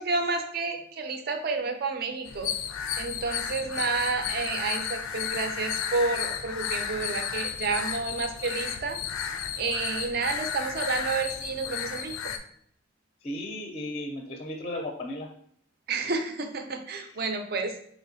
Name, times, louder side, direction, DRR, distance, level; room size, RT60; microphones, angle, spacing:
voice 1, 0.0-2.5 3.0-9.0 9.6-12.3 15.9-17.7, right 4 dB, 50° right, 6 dB, 0.5 m, -30 dB
sound 1, 2.3-12.4, left 8 dB, 90° left, 0.4 m, -33 dB
voice 2, 13.2-15.3, left 1 dB, 30° left, 1 dB, 0.4 m, -35 dB
4.3 x 3.0 x 2.6 m, 0.65 s
head